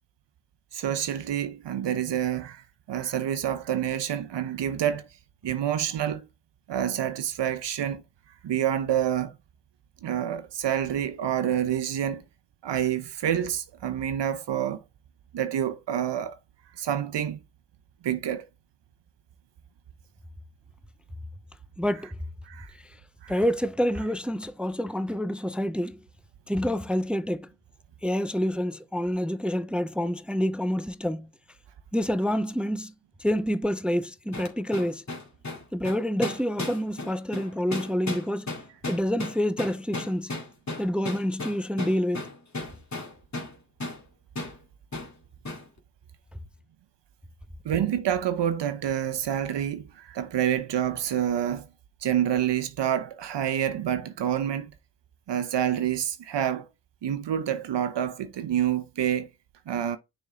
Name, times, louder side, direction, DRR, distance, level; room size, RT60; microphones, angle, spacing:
voice 1, 0.7-2.6 2.9-5.1 5.4-6.3 6.7-8.0 8.4-9.3 10.0-12.2 12.6-14.8 15.3-16.4 16.8-17.4 18.0-18.5 22.4-22.7 23.2-23.4 47.6-51.7 52.0-54.7 55.3-56.7 57.0-59.3 59.7-60.0, right 10 dB, 60° right, 0.8 m, -27 dB
voice 2, 21.8-22.1 23.3-26.0 26.5-27.5 28.0-31.3 31.9-32.9 33.2-35.0 35.7-38.5 38.9-40.3 40.8-42.2, equal, ahead, 0.4 m, -27 dB
sound 1, 34.3-43.6 43.8-44.0 44.4-44.6 44.9-45.1 45.5-45.7, left 2 dB, 35° left, 2.1 m, -35 dB
6.4 x 4.2 x 3.8 m
supercardioid pair, 55°, 46 cm